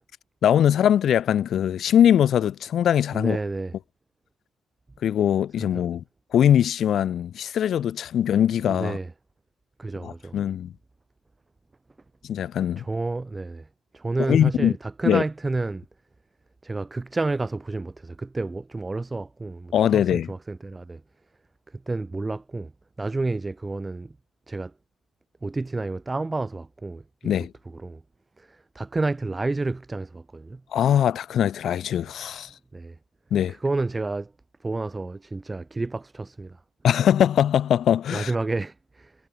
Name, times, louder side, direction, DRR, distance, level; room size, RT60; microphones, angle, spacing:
voice 1, 0.4-3.4 5.0-6.0 6.3-9.0 10.0-10.7 12.2-12.8 14.3-14.7 15.0-15.2 19.7-20.3 27.2-27.5 30.7-32.5 33.3-33.5 36.8-38.3, left 10 dB, 65° left, 2.6 m, -21 dB
voice 2, 3.1-3.7 5.6-5.9 8.7-9.1 9.8-10.4 12.8-13.7 13.9-15.8 16.6-21.0 21.7-22.7 23.0-24.1 24.5-24.7 25.4-28.0 28.4-30.6 32.7-33.0 33.5-34.3 34.6-36.6 38.1-39.2, right 3 dB, 20° right, 3.9 m, -30 dB
cardioid pair, 90°, 0 cm